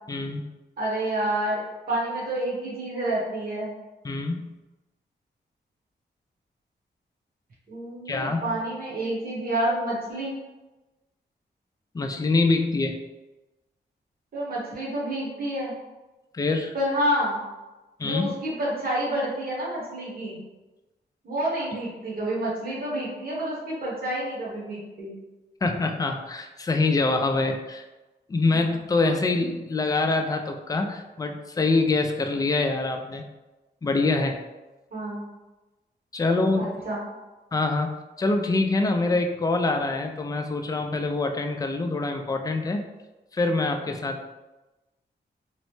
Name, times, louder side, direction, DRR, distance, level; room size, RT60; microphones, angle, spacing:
voice 1, 0.1-0.4 4.0-4.6 8.1-8.6 11.9-13.0 16.3-16.7 18.0-18.3 25.6-27.8 28.3-33.3 33.8-34.4 36.1-36.7 37.5-37.9 38.2-42.9 43.3-44.2, left 3 dB, 20° left, 4 dB, 0.3 m, -25 dB
voice 2, 0.8-3.7 7.7-10.4 14.3-15.7 16.7-17.4 18.0-20.4 21.2-25.1 28.5-28.6 34.9-35.2 36.6-37.0, right 1 dB, 55° right, -7 dB, 1.1 m, -29 dB
3.0 x 2.0 x 3.1 m, 1.1 s
cardioid pair, 85°, 18 cm